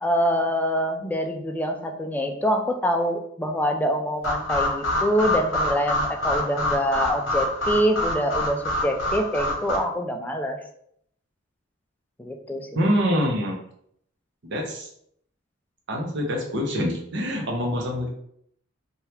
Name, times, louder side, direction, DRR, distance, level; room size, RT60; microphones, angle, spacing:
voice 1, 0.0-10.6 12.2-12.8, equal, 10° left, 3 dB, 0.3 m, -25 dB
sound 1, 4.2-9.8, left 1 dB, 65° left, 0.8 m, -26 dB
voice 2, 12.7-13.6 14.4-14.9 15.9-18.1, equal, 60° right, 0 dB, 0.7 m, -25 dB
2.8 x 2.3 x 3.2 m, 0.69 s
head